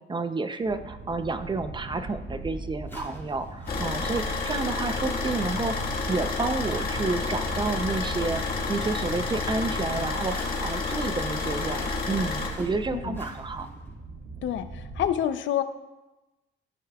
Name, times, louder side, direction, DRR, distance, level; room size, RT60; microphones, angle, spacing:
voice 1, 0.1-13.7, right 3 dB, 25° right, 9 dB, 0.6 m, -30 dB
sound 1, 0.6-15.1, right 2 dB, 50° right, 2.3 m, -40 dB
sound 2, 2.0-2.1 2.9-13.9, left 2 dB, 10° left, 2.3 m, -48 dB
Car / Idling, 3.7-12.5, left 3 dB, 50° left, 1.9 m, -30 dB
voice 2, 14.4-15.6, left 10 dB, 70° left, 10 dB, 0.6 m, -28 dB
15.0 x 5.5 x 2.4 m, 1.1 s
cardioid pair, 90°, 20 cm